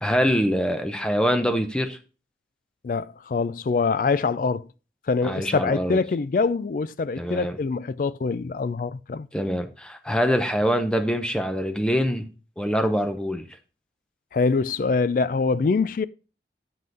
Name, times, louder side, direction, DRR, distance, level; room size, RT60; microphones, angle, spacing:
voice 1, 0.0-2.0 5.2-6.0 7.2-7.6 9.3-12.3 12.6-13.5, equal, 5° left, 0.6 m, -24 dB
voice 2, 2.8-4.7 5.1-9.3 14.3-16.0, left 4 dB, 50° left, 0.3 m, -24 dB
7.7 x 5.5 x 3.9 m
head